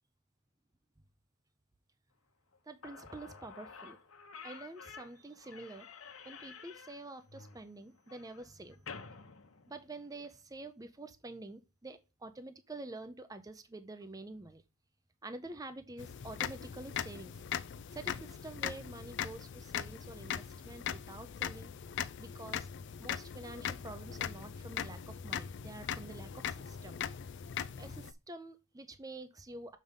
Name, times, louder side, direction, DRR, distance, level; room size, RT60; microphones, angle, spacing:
Slam / Squeak, 2.5-2.6 2.8-10.3, left 5 dB, 80° left, 1.1 m, -51 dB
voice 1, 2.6-4.0 4.4-5.9 6.2-8.9 9.7-14.6 15.2-17.4 17.9-21.7 22.2-22.7 23.0-27.0 27.8-29.8, right 2 dB, 15° right, 10 dB, 0.6 m, -48 dB
sound 1, 16.0-28.1, left 8 dB, 60° left, 0.4 m, -40 dB
6.6 x 5.3 x 3.7 m, 0.29 s
head